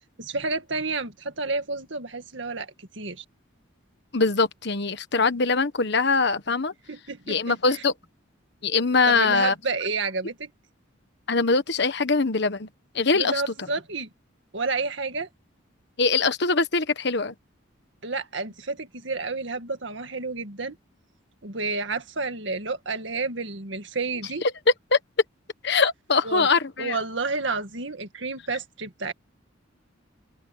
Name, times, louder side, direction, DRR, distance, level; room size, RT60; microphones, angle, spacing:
voice 1, 0.2-3.2 6.9-7.8 9.1-10.5 13.1-14.1 14.5-15.3 18.0-20.8 21.4-24.4 26.2-26.5 26.8-29.1, right 3 dB, 65° right, 2.0 m, -30 dB
voice 2, 4.1-6.7 7.3-7.9 8.6-9.5 11.3-12.7 12.9-13.3 16.0-17.3 24.9-25.0 25.6-27.0, left 4 dB, 60° left, 1.3 m, -22 dB
open air
head